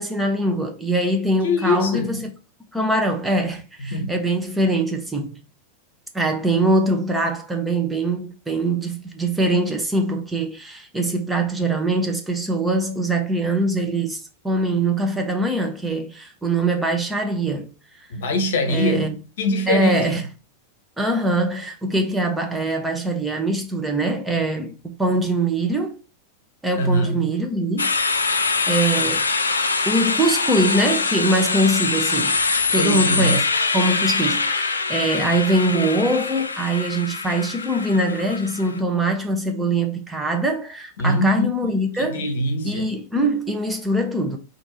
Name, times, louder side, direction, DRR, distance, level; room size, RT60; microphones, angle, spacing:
voice 1, 0.0-2.3 2.7-5.4 6.1-17.7 18.0-18.1 18.7-19.1 19.7-20.3 21.0-26.0 26.6-27.9 28.7-29.3 29.9-32.4 32.7-33.4 33.7-42.2 42.6-44.4, right 1 dB, 5° right, 0.9 m, -23 dB
voice 2, 1.4-2.1 3.9-4.1 18.1-20.0 26.8-27.2 32.8-33.4 41.0-41.5 41.9-42.9, left 1 dB, 60° left, 0.9 m, -23 dB
sound 1, 27.8-38.8, left 4 dB, 75° left, 0.4 m, -23 dB
4.4 x 2.6 x 4.3 m
figure-of-eight pair, 90°, 0 cm